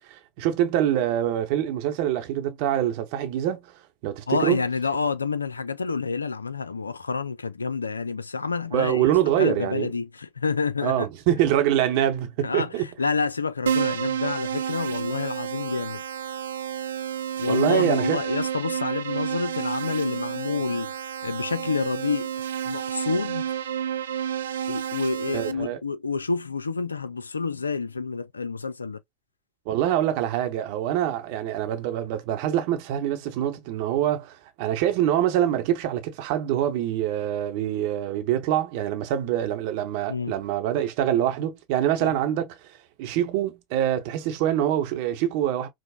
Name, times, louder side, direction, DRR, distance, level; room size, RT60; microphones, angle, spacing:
voice 1, 0.1-3.7 4.0-4.6 8.7-9.9 10.8-12.8 17.5-18.2 25.3-25.8 29.7-42.7 43.0-45.7, right 11 dB, 55° right, 0.8 m, -25 dB
voice 2, 4.3-9.1 9.4-11.1 12.4-16.0 17.4-20.9 21.2-22.3 22.6-23.5 24.7-29.0 40.1-40.4 42.0-42.1, left 4 dB, 85° left, 0.3 m, -28 dB
Keyboard (musical), 13.7-25.5, right 9 dB, 75° right, 0.3 m, -30 dB
4.9 x 2.0 x 2.2 m
figure-of-eight pair, 80°, 0 cm